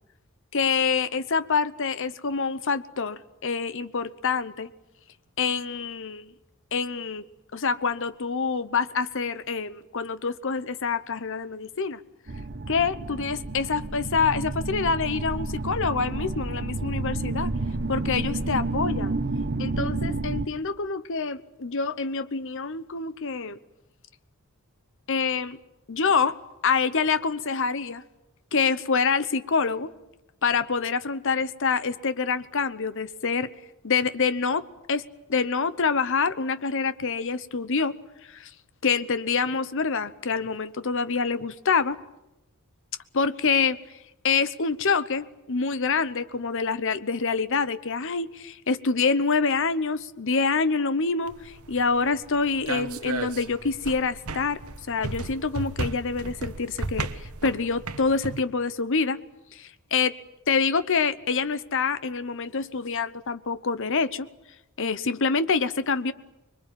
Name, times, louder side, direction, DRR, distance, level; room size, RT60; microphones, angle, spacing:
voice 1, 0.5-4.7 5.4-6.3 6.7-7.2 7.5-12.0 12.7-17.5 17.9-19.1 19.6-23.6 25.1-25.6 25.9-26.4 26.6-28.0 28.5-29.9 30.4-33.5 33.8-35.0 35.3-38.0 38.3-38.5 38.8-42.0 43.1-43.8 44.2-54.6 54.9-59.2 59.5-60.2 60.5-64.3 64.8-66.1, left 5 dB, 60° left, 14 dB, 0.9 m, -26 dB
sound 1, 12.3-20.5, right 2 dB, 50° right, 1.0 m, -30 dB
sound 2, 51.3-58.4, right 3 dB, 80° right, 1.3 m, -35 dB
25.0 x 22.5 x 9.0 m, 0.95 s
head